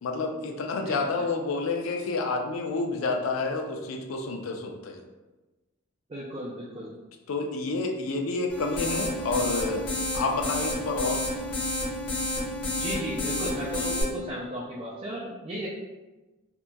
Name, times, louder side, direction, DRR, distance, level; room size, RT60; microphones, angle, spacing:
voice 1, 0.0-5.0 7.3-9.9 10.1-11.5, left 3 dB, 85° left, 3 dB, 0.4 m, -29 dB
voice 2, 6.1-6.9 12.7-15.7, equal, 30° right, -5 dB, 0.3 m, -35 dB
sound 1, 8.5-14.0, left 1 dB, 60° left, 1.1 m, -30 dB
2.8 x 2.5 x 2.2 m, 1.1 s
head